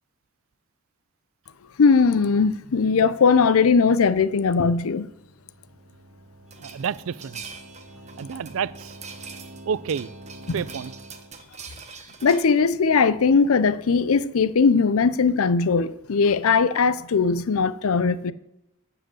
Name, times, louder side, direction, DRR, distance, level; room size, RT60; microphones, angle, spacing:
voice 1, 1.8-5.1 12.2-18.3, left 5 dB, 75° left, 0.5 m, -19 dB
sound 1, 4.6-11.4, right 1 dB, 50° right, 2.3 m, -46 dB
sound 2, 6.5-12.6, right 5 dB, 30° right, 1.0 m, -43 dB
voice 2, 6.6-7.4 8.2-9.0 9.7-10.1 10.5-10.9, right 7 dB, 65° right, 0.4 m, -29 dB
12.5 x 4.9 x 7.8 m
head